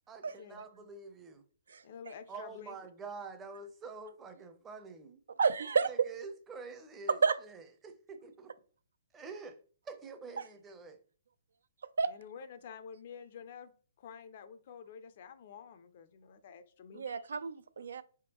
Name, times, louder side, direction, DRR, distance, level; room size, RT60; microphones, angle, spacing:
voice 1, 0.1-1.4 2.3-5.2 5.9-8.5 9.1-9.6 9.8-11.0, right 4 dB, 15° right, 0.6 m, -47 dB
voice 2, 1.8-2.8 12.1-13.7 14.0-17.2, left 7 dB, 50° left, 0.5 m, -49 dB
voice 3, 5.4-6.1 7.1-7.4 12.0-12.1 16.9-18.0, right 5 dB, 80° right, 0.4 m, -30 dB
4.4 x 3.5 x 2.9 m
hypercardioid pair, 145°, 0 cm